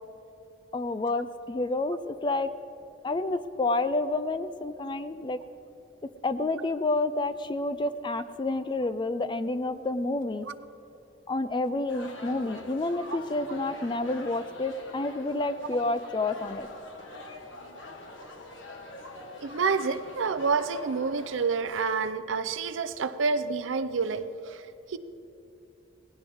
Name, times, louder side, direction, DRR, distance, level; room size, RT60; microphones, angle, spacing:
voice 1, 0.7-2.5 3.0-5.4 6.2-10.5 11.3-16.7, left 2 dB, 25° left, 12 dB, 0.4 m, -29 dB
sound 1, 11.9-21.6, left 2 dB, 75° left, 1.6 m, -45 dB
voice 2, 19.4-24.6 24.9-25.0, right 4 dB, 85° right, 11 dB, 0.6 m, -28 dB
18.5 x 16.5 x 3.6 m, 2.8 s
head